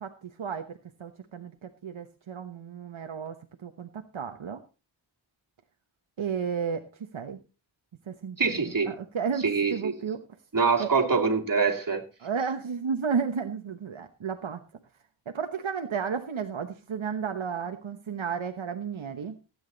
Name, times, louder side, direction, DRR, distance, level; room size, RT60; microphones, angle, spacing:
voice 1, 0.0-3.4 3.6-4.6 6.2-6.8 7.1-7.4 8.1-10.2 10.8-10.9 12.2-14.6 15.3-19.4, right 6 dB, 80° right, 1.2 m, -33 dB
voice 2, 8.4-8.9 9.4-9.9 10.5-12.0, right 5 dB, 45° right, 2.9 m, -24 dB
16.0 x 9.1 x 4.0 m
wide cardioid pair, 70°, 47 cm